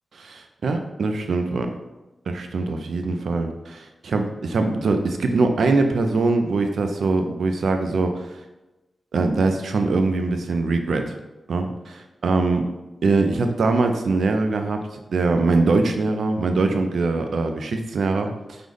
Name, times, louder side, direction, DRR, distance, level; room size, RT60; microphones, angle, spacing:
voice 1, 0.2-1.7 2.3-8.3 9.1-11.1 11.5-12.6 13.0-18.6, right 3 dB, 85° right, 6 dB, 0.3 m, -22 dB
3.3 x 2.0 x 3.7 m, 1.0 s
wide cardioid pair, 145°, 0 cm